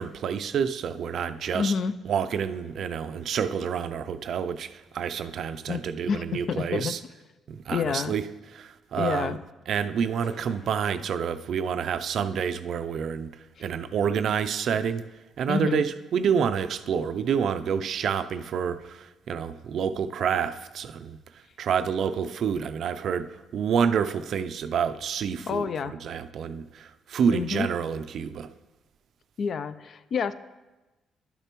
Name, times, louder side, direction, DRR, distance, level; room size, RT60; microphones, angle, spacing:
voice 1, 0.0-1.7 2.1-7.0 7.5-8.2 8.6-9.4 9.7-13.3 13.6-15.0 15.4-21.2 21.6-28.5, right 7 dB, 65° right, 11 dB, 0.4 m, -28 dB
voice 2, 1.5-1.9 5.7-6.9 7.7-8.2 9.0-9.4 13.6-13.7 15.5-15.8 25.5-25.9 27.3-27.7 29.4-30.3, left 6 dB, 55° left, 14 dB, 0.4 m, -28 dB
sound 1, 10.2-12.3, left 2 dB, 80° left, 2.1 m, -51 dB
11.5 x 6.7 x 3.0 m, 1.1 s
cardioid pair, 90°, 0 cm